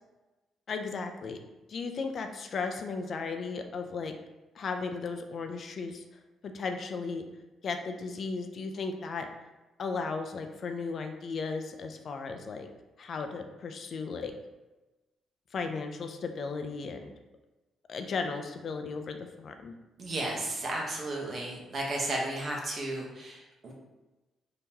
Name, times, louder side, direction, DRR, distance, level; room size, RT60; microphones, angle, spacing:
voice 1, 0.7-1.4 1.7-4.1 4.6-6.0 6.4-7.2 7.6-9.3 9.8-12.7 13.0-14.3 15.5-17.1 17.9-19.8, left 4 dB, 55° left, 6 dB, 0.4 m, -35 dB
voice 2, 20.0-23.7, right 1 dB, 45° right, -2 dB, 1.0 m, -34 dB
3.5 x 2.9 x 2.8 m, 1.1 s
cardioid pair, 90°, 0 cm